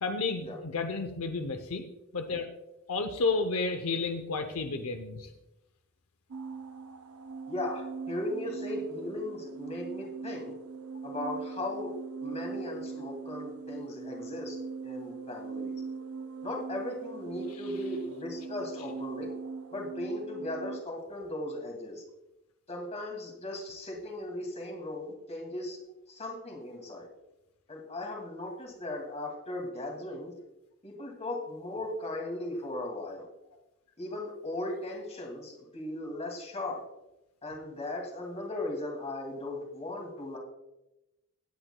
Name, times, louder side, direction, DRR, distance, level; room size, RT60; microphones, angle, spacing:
voice 1, 0.0-1.8 2.1-2.5 2.9-5.3 17.5-17.6, left 3 dB, 75° left, 6 dB, 0.7 m, -31 dB
sound 1, 6.3-20.8, right 5 dB, 75° right, 0.6 m, -41 dB
voice 2, 7.5-10.5 11.0-11.9 12.2-14.6 14.8-15.8 16.4-19.3 19.7-22.0 22.7-25.8 26.1-27.1 27.7-30.3 30.8-33.3 34.0-36.8 37.4-40.4, left 1 dB, 30° left, 1 dB, 2.3 m, -37 dB
17.5 x 8.9 x 2.2 m, 0.94 s
head